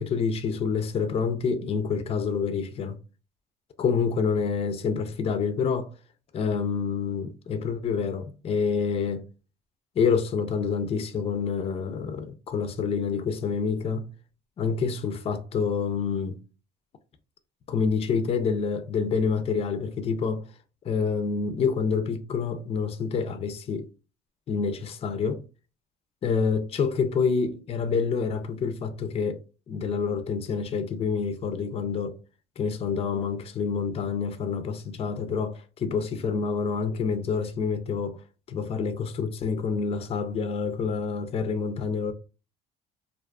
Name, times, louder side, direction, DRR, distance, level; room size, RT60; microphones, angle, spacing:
voice 1, 0.0-3.0 3.8-5.9 6.3-9.3 10.0-14.1 14.6-16.4 17.7-20.5 20.8-23.9 24.5-25.4 26.2-32.2 32.6-38.2 38.5-42.1, left 5 dB, 35° left, 0.4 m, -27 dB
2.4 x 2.3 x 2.2 m
cardioid pair, 110°, 17 cm